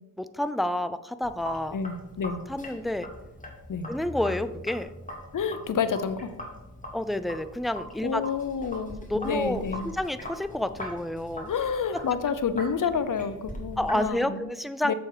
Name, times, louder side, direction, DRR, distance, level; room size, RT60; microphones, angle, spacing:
voice 1, 0.2-1.8 2.5-3.1 3.9-4.9 6.9-8.2 9.1-11.5 13.8-14.9, left 1 dB, ahead, 12 dB, 0.5 m, -29 dB
Sink (filling or washing), 1.2-14.1, left 1 dB, 20° left, 2.4 m, -41 dB
voice 2, 1.7-2.4 3.7-3.9 5.3-6.4 8.0-9.9 11.5-14.5 14.8-14.9, left 6 dB, 60° left, 12 dB, 0.8 m, -29 dB
7.3 x 7.1 x 4.9 m, 0.98 s
cardioid pair, 60°, 36 cm